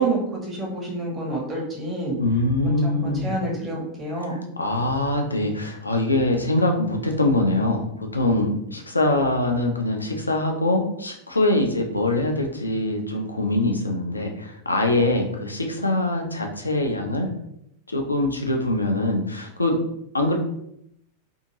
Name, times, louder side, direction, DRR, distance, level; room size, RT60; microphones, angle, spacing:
voice 1, 0.0-2.2 2.6-4.4, right 2 dB, 20° right, -3 dB, 1.0 m, -28 dB
voice 2, 2.2-3.3 4.2-17.3 17.9-19.8 20.1-20.4, left 2 dB, 80° left, 3 dB, 0.5 m, -23 dB
2.7 x 2.5 x 2.8 m, 0.75 s
figure-of-eight pair, 90°, 0 cm